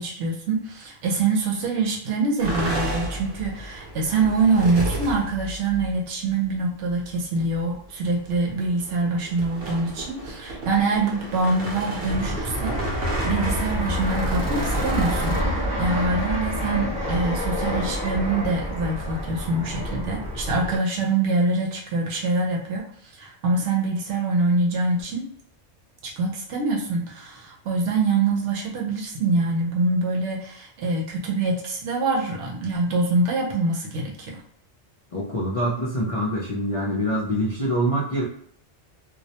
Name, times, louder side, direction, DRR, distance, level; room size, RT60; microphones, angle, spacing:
voice 1, 0.0-25.3 26.0-34.4, right 3 dB, 85° right, -1 dB, 0.9 m, -25 dB
sound 1, 2.4-5.9 6.9-7.1 7.4-7.6 8.0-15.4, right 1 dB, 60° right, 0.9 m, -32 dB
Fixed-wing aircraft airplane, 12.1-20.8, equal, 20° left, 0.9 m, -27 dB
voice 2, 35.1-38.2, equal, 55° left, -6 dB, 0.3 m, -25 dB
2.3 x 2.1 x 2.7 m, 0.62 s
omnidirectional pair, 1.2 m